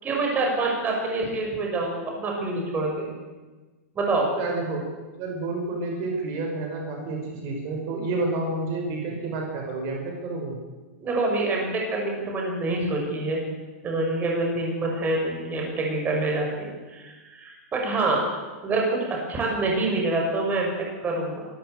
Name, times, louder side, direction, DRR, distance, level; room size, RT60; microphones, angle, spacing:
voice 1, 0.0-3.1 3.9-4.3 11.0-13.4 13.8-18.2 18.6-21.5, right 2 dB, 25° right, 0 dB, 6.3 m, -26 dB
voice 2, 4.4-4.8 5.2-10.6, right 3 dB, 45° right, 1 dB, 5.7 m, -29 dB
25.0 x 14.0 x 8.0 m, 1.3 s
hypercardioid pair, 130°, 8 cm